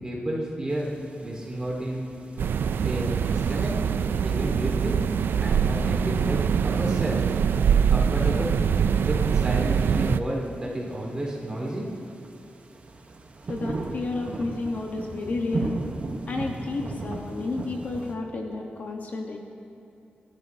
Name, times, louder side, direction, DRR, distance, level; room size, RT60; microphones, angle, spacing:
voice 1, 0.0-0.9 1.2-2.1 2.8-3.7 4.2-5.0 5.4-7.2 7.9-8.5 9.0-11.9, right 1 dB, 20° right, -4 dB, 4.0 m, -31 dB
sound 1, 0.7-18.1, right 3 dB, 40° right, 1.0 m, -39 dB
sound 2, 2.4-10.2, right 7 dB, 90° right, 0.3 m, -23 dB
voice 2, 13.5-15.8 16.3-19.4, left 3 dB, 50° left, 1 dB, 1.1 m, -31 dB
28.0 x 12.0 x 2.8 m, 2.7 s
wide cardioid pair, 155°, 4 cm